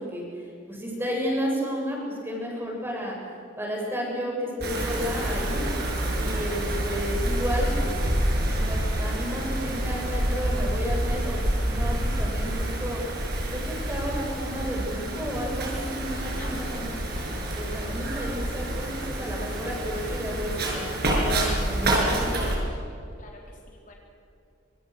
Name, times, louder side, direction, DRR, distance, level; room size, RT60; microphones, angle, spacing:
voice 1, 0.0-3.2 3.6-5.6 6.1-8.1 8.4-13.0 13.5-17.0 17.5-22.3, equal, 10° right, -2 dB, 7.3 m, -32 dB
Wind, 4.6-22.6, right 1 dB, 55° right, 6.1 m, -28 dB
voice 2, 16.2-16.8 17.2-17.5 22.7-23.9, left 2 dB, 40° left, -1 dB, 4.2 m, -49 dB
26.5 x 26.0 x 6.4 m, 2.6 s
head